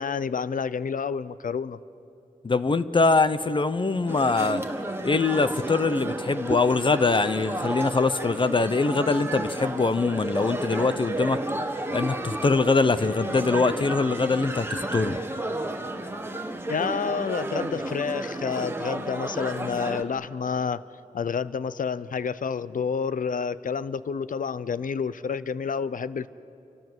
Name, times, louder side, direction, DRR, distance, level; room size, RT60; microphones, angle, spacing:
voice 1, 0.0-1.8 16.7-20.8 21.1-26.3, left 6 dB, 75° left, 16 dB, 0.7 m, -29 dB
voice 2, 2.4-4.6 5.0-11.4 11.9-15.2, left 3 dB, 35° left, 13 dB, 0.7 m, -23 dB
sound 1, 4.1-20.0, right 1 dB, 15° right, 1.6 m, -32 dB
28.5 x 24.5 x 7.9 m, 2.8 s
wide cardioid pair, 135°, 14 cm